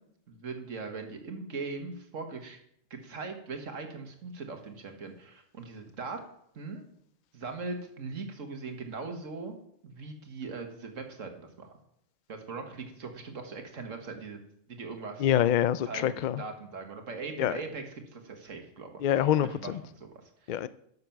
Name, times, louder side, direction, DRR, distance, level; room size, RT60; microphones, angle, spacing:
voice 1, 0.3-2.6 2.9-6.2 6.6-6.8 7.3-9.6 9.8-11.7 12.3-14.4 14.7-15.2 15.9-17.8 18.1-18.9 19.4-20.6, right 4 dB, 80° right, 1.9 m, -40 dB
voice 2, 15.2-16.4 17.4-17.5 19.0-19.8 20.5-20.7, left 11 dB, 75° left, 0.4 m, -26 dB
12.5 x 6.8 x 5.8 m
omnidirectional pair, 1.3 m